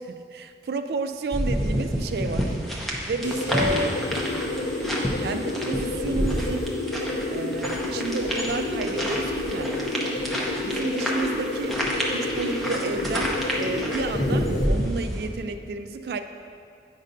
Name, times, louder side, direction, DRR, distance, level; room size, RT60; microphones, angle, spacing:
voice 1, 0.1-2.5 3.0-4.0 5.2-6.7 7.3-10.1 10.6-11.7 12.1-16.2, right 3 dB, 65° right, 8 dB, 0.3 m, -31 dB
sound 1, 1.3-15.3, equal, ahead, 0.6 m, -29 dB
sound 2, 3.2-14.7, left 2 dB, 85° left, 0.5 m, -30 dB
8.9 x 5.3 x 2.6 m, 2.4 s
head